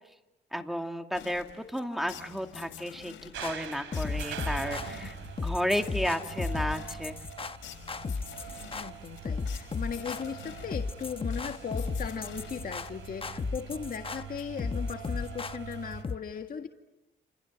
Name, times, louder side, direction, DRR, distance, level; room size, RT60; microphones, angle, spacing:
voice 1, 0.5-5.1 5.4-7.1, equal, ahead, 5 dB, 2.4 m, -33 dB
sound 1, 1.1-13.3, left 9 dB, 75° left, 4.0 m, -49 dB
sound 2, 3.3-16.0, right 9 dB, 80° right, 2.9 m, -44 dB
sound 3, 3.4-16.2, left 4 dB, 30° left, 1.0 m, -35 dB
voice 2, 8.7-16.7, left 7 dB, 45° left, 4 dB, 1.8 m, -37 dB
29.0 x 27.5 x 6.5 m, 1.0 s
cardioid pair, 90°, 20 cm